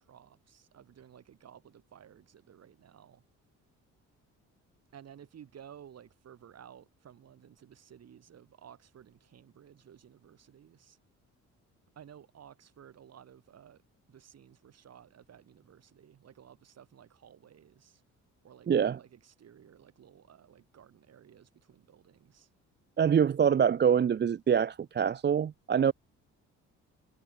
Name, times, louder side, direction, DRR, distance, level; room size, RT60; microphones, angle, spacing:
voice 1, 0.0-3.2 4.9-11.0 11.9-13.8 14.1-18.0 18.4-22.5, right 9 dB, 55° right, 3.1 m, -55 dB
voice 2, 18.7-19.0 23.0-25.9, right 8 dB, 35° right, 0.6 m, -25 dB
cardioid pair, 90°, 30 cm